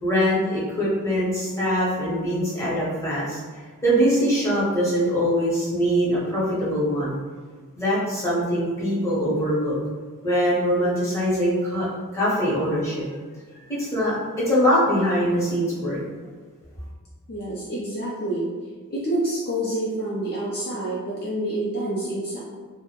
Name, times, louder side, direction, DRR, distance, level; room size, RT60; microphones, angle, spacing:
voice 1, 0.0-3.4 3.8-7.2 7.7-9.7 10.2-11.9 12.1-13.0 13.7-16.0, equal, 15° left, -9 dB, 0.7 m, -23 dB
voice 2, 17.3-18.5 18.9-22.4, right 1 dB, 45° left, -6 dB, 0.4 m, -27 dB
2.2 x 2.0 x 2.8 m, 1.5 s
head